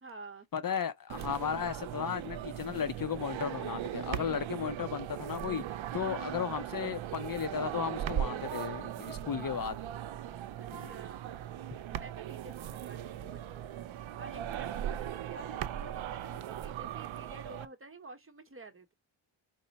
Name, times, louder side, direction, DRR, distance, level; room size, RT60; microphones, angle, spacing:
voice 1, 0.0-0.5 5.9-6.2 10.6-11.3 11.7-18.9, right 3 dB, 25° right, 0.9 m, -50 dB
voice 2, 0.5-9.8 10.7-10.9, left 8 dB, 45° left, 0.5 m, -35 dB
sound 1, 1.1-17.7, right 10 dB, 70° right, 0.6 m, -38 dB
5.2 x 2.1 x 4.0 m
wide cardioid pair, 140°, 49 cm